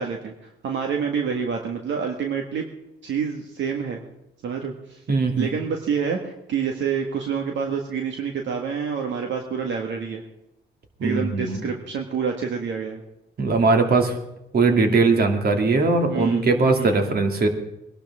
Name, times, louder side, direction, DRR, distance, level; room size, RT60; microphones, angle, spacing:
voice 1, 0.0-2.7 3.0-4.0 4.4-5.0 5.4-10.2 11.0-13.0 16.1-16.4 16.8-17.0, right 6 dB, 70° right, 2 dB, 1.8 m, -27 dB
voice 2, 5.1-5.5 11.0-11.6 13.4-14.2 14.5-17.5, right 3 dB, 50° right, 4 dB, 2.6 m, -20 dB
22.5 x 12.0 x 3.7 m, 0.84 s
cardioid pair, 90°, 20 cm